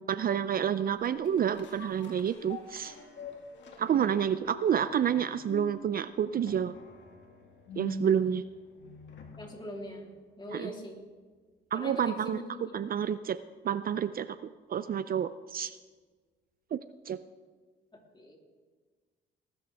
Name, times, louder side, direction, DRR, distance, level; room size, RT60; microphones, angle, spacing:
voice 1, 0.1-2.9 3.8-6.7 7.8-8.4 10.5-10.7 11.7-12.4 12.7-13.4 13.6-15.8 16.7-16.8 17.1-17.2, right 8 dB, 50° right, 13 dB, 0.5 m, -29 dB
sound 1, 1.0-9.6 10.0-10.1, left 3 dB, 65° left, 2.3 m, -45 dB
voice 2, 9.4-10.1 10.4-11.0 11.7-12.6 18.1-18.4, equal, 25° left, 0 dB, 3.4 m, -41 dB
19.5 x 12.5 x 3.5 m, 1.4 s
cardioid pair, 90°, 20 cm